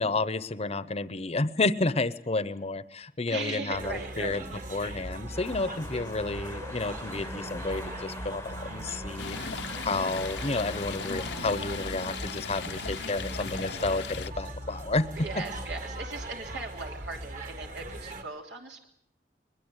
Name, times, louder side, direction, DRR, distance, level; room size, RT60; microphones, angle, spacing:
voice 1, 0.0-4.4 4.7-15.3, left 3 dB, 35° left, 15 dB, 0.9 m, -31 dB
voice 2, 3.3-4.6 15.2-18.9, right 3 dB, 80° right, 2 dB, 3.0 m, -38 dB
sound 1, 3.7-18.2, right 1 dB, 50° right, 2.4 m, -39 dB
sound 2, 5.3-11.4, left 2 dB, 15° left, 0.9 m, -44 dB
Stream, 9.2-14.3, left 6 dB, 80° left, 0.9 m, -38 dB
22.0 x 21.5 x 8.2 m, 0.67 s
head